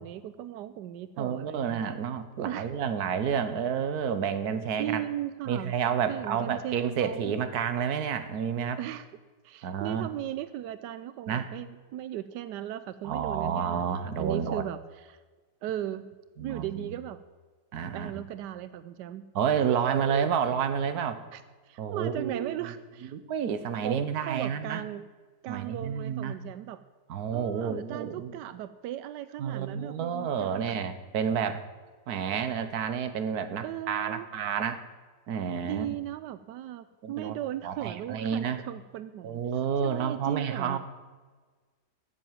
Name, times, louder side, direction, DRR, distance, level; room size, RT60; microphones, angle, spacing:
voice 1, 0.0-1.9 2.4-2.7 4.8-5.7 6.1-7.3 8.8-9.1 9.4-15.2 15.6-16.1 16.4-17.2 17.9-19.2 19.7-20.3 21.3-23.1 23.8-25.1 25.4-26.8 27.3-30.7 33.6-34.3 35.6-39.4 39.8-40.8, right 12 dB, 90° right, 13 dB, 1.2 m, -37 dB
voice 2, 1.2-5.0 5.5-8.8 9.6-10.1 11.3-11.5 13.0-14.6 16.4-17.0 17.7-18.2 19.3-21.2 21.8-22.7 23.1-24.8 25.5-26.4 27.1-28.4 29.4-31.7 32.1-34.8 35.3-36.0 37.0-37.4 37.6-38.6 39.2-40.8, right 7 dB, 65° right, 10 dB, 1.5 m, -30 dB
13.0 x 7.9 x 9.1 m, 1.4 s
omnidirectional pair, 1.8 m